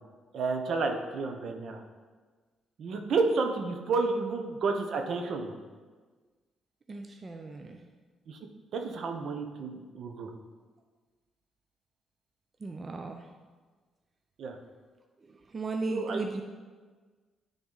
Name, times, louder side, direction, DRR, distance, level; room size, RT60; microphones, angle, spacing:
voice 1, 0.3-1.8 2.8-5.5 8.3-8.4 8.7-10.3 14.4-14.6 15.9-16.4, right 4 dB, 65° right, 4 dB, 0.9 m, -31 dB
voice 2, 6.9-7.8 12.6-13.2 15.5-16.4, right 3 dB, 35° right, 4 dB, 0.5 m, -36 dB
10.0 x 3.9 x 3.9 m, 1.4 s
cardioid pair, 90°, 0 cm